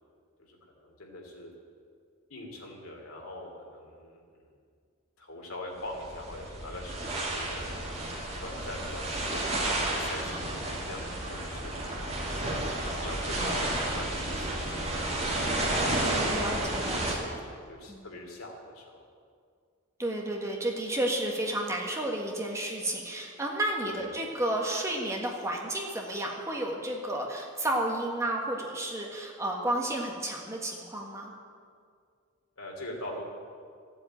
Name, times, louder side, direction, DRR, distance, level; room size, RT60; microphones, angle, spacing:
voice 1, 0.5-1.5 2.3-4.5 5.2-7.9 8.4-11.7 12.4-15.5 16.0-19.1 23.8-24.2 32.6-33.2, left 1 dB, 80° left, 0 dB, 3.0 m, -43 dB
sound 1, 5.8-17.1, right 1 dB, 30° right, 2.6 m, -31 dB
voice 2, 16.0-17.4 17.9-18.0 20.0-31.3, right 1 dB, 15° right, 0 dB, 1.5 m, -32 dB
14.5 x 7.9 x 9.0 m, 2.2 s
head